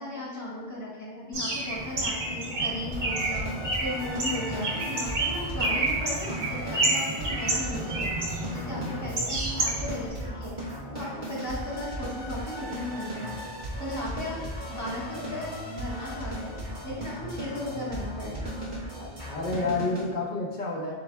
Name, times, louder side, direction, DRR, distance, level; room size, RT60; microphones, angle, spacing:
voice 1, 0.0-3.5 3.8-8.1 8.5-10.6 10.9-13.3 13.8-14.4 14.7-16.6 16.8-18.4, left 1 dB, 15° left, -7 dB, 1.2 m, -36 dB
Bird, 1.3-10.1, right 2 dB, 85° right, 1.6 m, -30 dB
sound 1, 2.9-20.1, equal, 45° right, 1.2 m, -36 dB
voice 2, 19.0-20.9, left 3 dB, 50° left, -1 dB, 0.8 m, -30 dB
4.8 x 4.6 x 2.2 m, 1.2 s
omnidirectional pair, 1.2 m